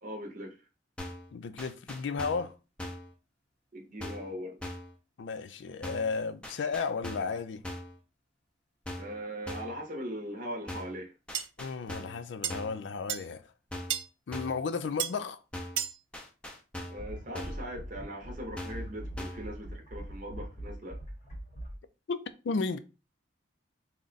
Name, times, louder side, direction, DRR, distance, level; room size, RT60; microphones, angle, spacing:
voice 1, 0.0-0.6 3.7-4.6 9.0-11.1 16.9-21.0, equal, 40° right, 0.7 m, -40 dB
sound 1, 1.0-1.3 1.6-2.5 2.8-3.1 4.0-4.3 4.6-4.9 5.8-6.1 6.4-7.4 7.6-8.0 8.9-9.2 9.5-9.8 10.7-11.0 11.3-12.2 12.5-12.8 13.7-14.0 14.3-14.6 15.5-15.9 16.1-17.1 17.3-17.7 18.6-18.9 19.2-19.5, left 1 dB, 5° left, 0.5 m, -41 dB
voice 2, 1.3-2.6 5.2-7.6 11.6-13.4 14.3-15.4 22.1-22.8, left 5 dB, 70° left, 0.4 m, -33 dB
sound 2, 11.3-11.5 12.4-12.5 13.1-13.2 13.9-14.1 15.0-15.1 15.8-16.0, right 11 dB, 75° right, 0.4 m, -31 dB
sound 3, 17.0-21.7, right 1 dB, 35° left, 0.8 m, -42 dB
3.6 x 2.2 x 3.9 m
head